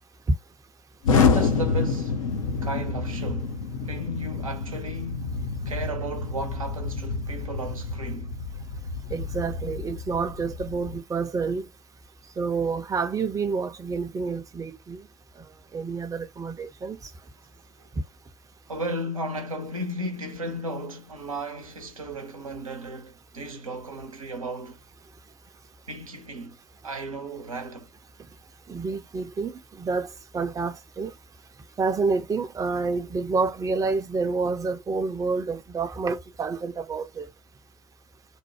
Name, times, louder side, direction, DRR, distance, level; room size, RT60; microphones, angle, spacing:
Explosion, 1.0-11.0, left 4 dB, 75° left, 0.7 m, -28 dB
voice 1, 1.1-2.4 2.6-3.6 3.8-8.3 18.7-24.8 25.9-26.6 26.8-27.9, right 1 dB, 85° right, 0.7 m, -35 dB
voice 2, 9.1-11.7 12.4-15.0 15.4-15.5 15.7-17.0 28.7-31.1 31.8-37.3, right 4 dB, 20° right, 0.6 m, -28 dB
3.2 x 2.2 x 2.9 m
figure-of-eight pair, 60°, 17 cm